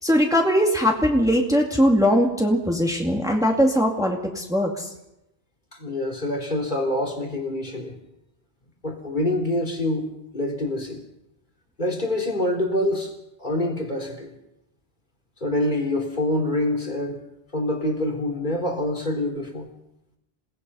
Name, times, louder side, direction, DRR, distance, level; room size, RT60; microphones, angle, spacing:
voice 1, 0.0-4.9, equal, 5° right, 0 dB, 2.4 m, -20 dB
voice 2, 5.7-8.0 8.8-11.0 11.8-13.1 13.4-14.4 15.4-17.2 17.5-19.7, left 1 dB, 50° left, 1 dB, 3.8 m, -26 dB
28.0 x 19.5 x 5.6 m, 0.90 s
omnidirectional pair, 1.1 m